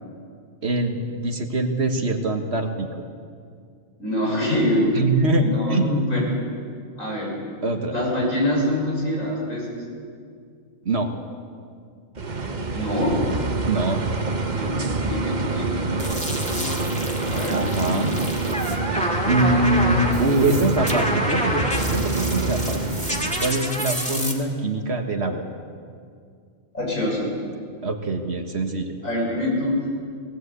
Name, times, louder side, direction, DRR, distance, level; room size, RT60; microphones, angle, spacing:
voice 1, 0.6-3.0 4.9-6.2 7.6-7.9 10.8-11.1 13.7-14.0 17.5-18.1 19.3-23.0 23.4-25.4 27.8-28.9, right 2 dB, 50° right, 4 dB, 1.7 m, -23 dB
voice 2, 4.0-4.9 5.4-5.8 6.1-6.2 7.0-7.3 7.9-9.8 12.7-13.2 14.5-14.7 15.1-16.2 16.5-18.0 26.7-27.3 29.0-29.8, left 1 dB, 70° left, -4 dB, 7.0 m, -25 dB
sound 1, 12.2-23.5, right 3 dB, 35° right, 1.1 m, -26 dB
sound 2, 16.0-24.3, equal, 5° left, 2.1 m, -28 dB
19.5 x 17.0 x 8.3 m, 2.2 s
omnidirectional pair, 1.4 m